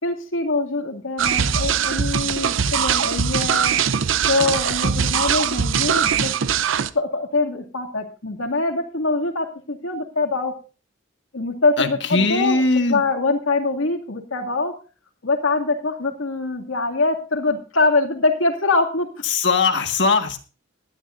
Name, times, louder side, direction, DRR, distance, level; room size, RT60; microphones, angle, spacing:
voice 1, 0.0-3.8 4.2-6.3 6.9-10.5 11.3-12.6 12.9-14.7 15.2-19.1, left 3 dB, 90° left, 4 dB, 2.4 m, -23 dB
sound 1, 1.2-6.9, right 7 dB, 75° right, 0.6 m, -21 dB
voice 2, 11.8-13.0 19.3-20.4, left 3 dB, 60° left, 6 dB, 1.6 m, -20 dB
19.0 x 12.0 x 2.6 m, 0.34 s
head